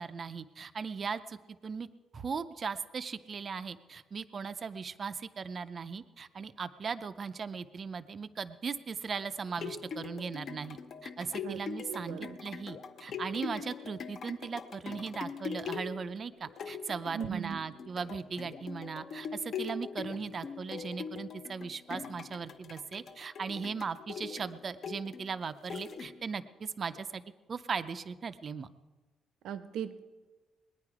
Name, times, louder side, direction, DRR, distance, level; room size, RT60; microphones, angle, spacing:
voice 1, 0.0-1.9 2.1-27.2 27.5-28.7, right 5 dB, 30° right, 12 dB, 0.5 m, -38 dB
sound 1, 9.3-26.4 26.9-27.0, left 6 dB, 40° left, 0.7 m, -42 dB
voice 2, 11.9-12.4 17.1-17.6 29.4-30.0, right 8 dB, 75° right, 12 dB, 0.7 m, -38 dB
20.5 x 9.9 x 4.8 m, 1.3 s
cardioid pair, 165°, 0 cm